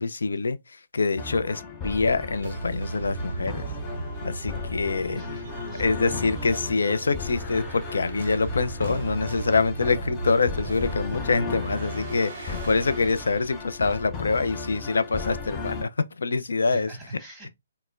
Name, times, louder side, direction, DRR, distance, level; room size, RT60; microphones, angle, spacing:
voice 1, 0.0-3.6 4.2-5.2 5.8-15.9 16.2-16.9, left 4 dB, 80° left, 0.4 m, -25 dB
sound 1, 1.2-15.8, left 4 dB, 20° left, 0.6 m, -36 dB
sound 2, 2.4-13.8, right 4 dB, 60° right, 0.5 m, -37 dB
voice 2, 5.1-5.8 16.7-17.5, right 2 dB, 5° right, 1.6 m, -43 dB
4.2 x 2.1 x 2.4 m
hypercardioid pair, 145°, 0 cm